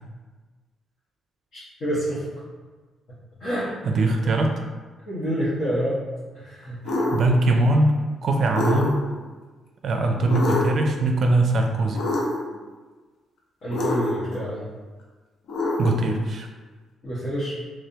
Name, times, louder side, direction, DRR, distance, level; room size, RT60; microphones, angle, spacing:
voice 1, 1.5-2.2 3.4-3.7 5.1-6.0 6.3-6.8 13.6-14.7 17.0-17.6, equal, 55° left, -11 dB, 1.3 m, -27 dB
voice 2, 3.9-4.5 7.1-9.0 9.8-12.0 15.8-16.5, right 2 dB, 55° right, 3 dB, 0.4 m, -21 dB
sound 1, 6.9-7.3 8.5-9.2 10.3-10.9 12.0-12.6 13.7-14.4 15.5-16.2, left 2 dB, 75° left, 0.7 m, -26 dB
3.4 x 3.2 x 2.8 m, 1.3 s
cardioid pair, 90°, 0 cm